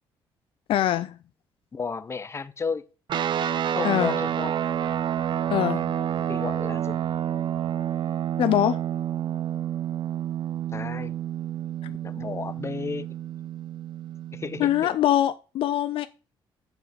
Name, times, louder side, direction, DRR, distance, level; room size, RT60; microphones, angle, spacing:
voice 1, 0.7-1.2 3.8-4.1 5.5-5.9 8.4-8.8 11.8-11.9 14.6-16.1, left 12 dB, 70° left, 0.4 m, -23 dB
voice 2, 1.7-2.9 3.7-4.5 6.3-7.0 10.7-11.1 12.0-13.1 14.3-15.0, left 5 dB, 30° left, 0.7 m, -33 dB
sound 1, 3.1-14.8, right 10 dB, 55° right, 0.5 m, -29 dB
7.0 x 3.9 x 6.5 m
cardioid pair, 90°, 9 cm